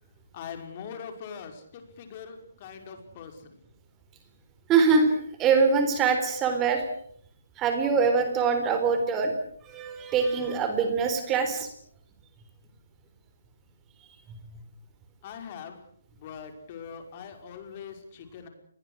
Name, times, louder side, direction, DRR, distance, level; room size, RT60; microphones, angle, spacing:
voice 1, 0.3-3.3 15.2-15.8 16.2-18.5, left 7 dB, 35° left, 6 dB, 5.5 m, -42 dB
voice 2, 4.7-6.8 7.6-9.3 9.6-11.7, right 5 dB, 15° right, 6 dB, 3.9 m, -23 dB
30.0 x 21.5 x 6.4 m, 0.65 s
figure-of-eight pair, 145°, 0 cm